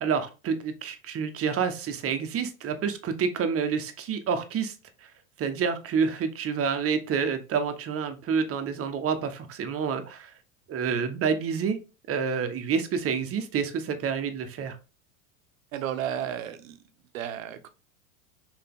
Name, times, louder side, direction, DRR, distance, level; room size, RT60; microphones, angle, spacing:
voice 1, 0.0-4.7 5.4-10.3 10.7-11.8 12.1-14.8, right 6 dB, 35° right, 8 dB, 1.4 m, -28 dB
voice 2, 15.7-16.8 17.1-17.7, right 10 dB, 70° right, 10 dB, 1.2 m, -33 dB
5.8 x 4.7 x 3.7 m, 0.32 s
hypercardioid pair, 90°, 42 cm